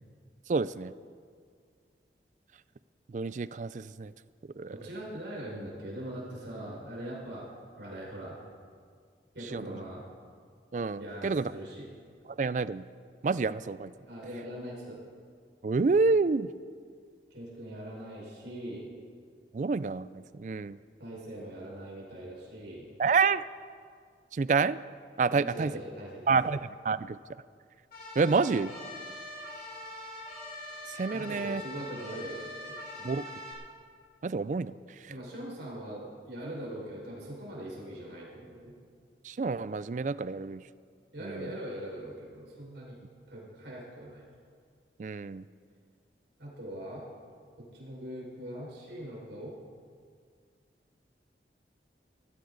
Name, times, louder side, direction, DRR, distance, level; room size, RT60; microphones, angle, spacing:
voice 1, 0.5-0.9 3.1-4.1 4.6-4.8 9.4-9.8 10.7-11.5 12.3-12.8 13.2-13.9 15.6-16.5 19.5-20.8 23.0-23.4 24.3-24.8 25.2-25.7 26.3-27.2 28.2-28.7 30.9-31.6 33.0-33.3 34.2-35.1 39.2-40.6 41.2-41.6 45.0-45.5, right 4 dB, 45° right, 17 dB, 0.3 m, -28 dB
voice 2, 4.7-7.5 7.8-8.4 9.3-10.0 11.0-11.9 14.1-15.0 17.3-18.9 21.0-22.9 25.3-26.3 31.1-33.2 35.1-38.7 41.1-43.0 43.3-44.3 46.4-47.1 47.6-49.6, right 1 dB, 85° right, -4 dB, 5.3 m, -41 dB
sound 1, 27.9-33.5, left 1 dB, 55° left, 4.2 m, -43 dB
19.5 x 14.5 x 4.0 m, 2.1 s
head